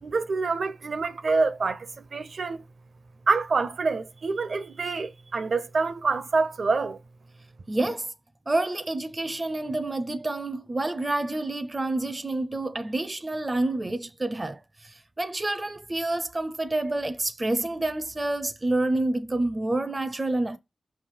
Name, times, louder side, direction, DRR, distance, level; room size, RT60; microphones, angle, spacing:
voice 1, 0.0-2.6 3.3-7.0, right 4 dB, 60° right, 0.7 m, -26 dB
voice 2, 7.7-8.1 8.5-20.6, right 2 dB, 25° right, 0.5 m, -28 dB
5.8 x 3.3 x 5.5 m
wide cardioid pair, 140°, 0 cm